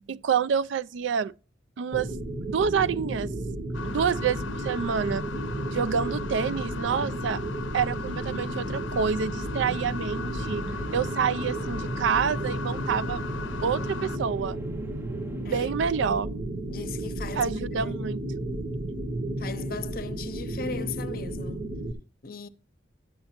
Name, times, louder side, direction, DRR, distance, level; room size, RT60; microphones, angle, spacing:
voice 1, 0.1-1.3 1.8-2.1 2.5-3.3 3.8-5.2 5.7-7.4 7.7-10.6 10.9-13.2 13.6-14.6 15.4-16.4 17.4-18.2, right 6 dB, 80° right, 0.4 m, -27 dB
sound 1, 1.9-21.9, right 1 dB, 40° right, 0.8 m, -33 dB
sound 2, 3.7-14.2, left 4 dB, 90° left, 0.6 m, -37 dB
sound 3, 10.4-15.6, right 1 dB, 10° right, 0.4 m, -46 dB
voice 2, 15.4-15.9 16.7-18.2 19.4-21.7 22.2-22.5, left 5 dB, 50° left, 0.6 m, -38 dB
11.5 x 8.7 x 2.9 m
head